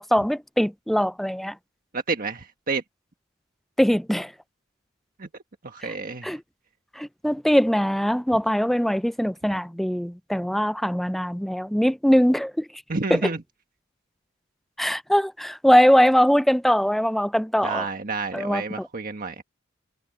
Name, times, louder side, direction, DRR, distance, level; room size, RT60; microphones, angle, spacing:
voice 1, 0.0-1.5 3.8-4.3 6.2-6.4 7.0-12.6 13.1-13.2 14.8-17.9 18.3-18.9, equal, ahead, 0.3 m, -21 dB
voice 2, 1.9-2.8 5.2-5.3 5.6-6.3 12.9-13.4 17.6-19.4, right 4 dB, 45° right, 1.5 m, -29 dB
head